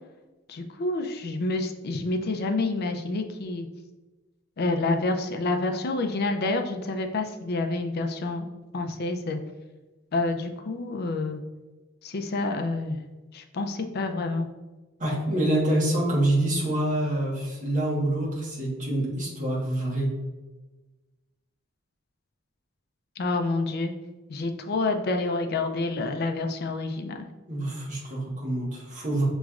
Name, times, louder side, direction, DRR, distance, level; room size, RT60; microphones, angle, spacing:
voice 1, 0.5-3.7 4.6-8.5 8.7-9.4 10.1-11.4 12.0-13.0 13.3-14.5 23.2-23.9 24.3-27.2, left 2 dB, 50° left, 5 dB, 0.4 m, -28 dB
voice 2, 15.0-20.1 27.5-29.3, right 1 dB, 40° right, -4 dB, 1.3 m, -26 dB
6.1 x 3.0 x 2.4 m, 1.2 s
head